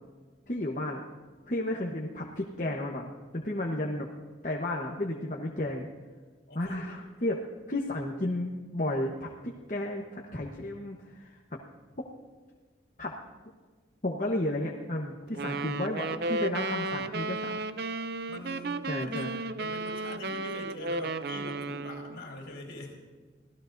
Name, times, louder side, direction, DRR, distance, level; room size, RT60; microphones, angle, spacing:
voice 1, 0.5-1.0 1.5-4.1 4.4-5.9 6.5-7.4 7.7-11.4 13.0-13.1 14.0-17.6 18.9-19.3, left 1 dB, 40° left, -1 dB, 1.1 m, -33 dB
voice 2, 6.5-7.0 15.2-15.9 18.3-22.9, left 1 dB, 60° left, -1 dB, 3.7 m, -44 dB
sound 1, 15.3-22.2, right 3 dB, 55° right, 0.5 m, -34 dB
25.0 x 16.5 x 2.7 m, 1.4 s
head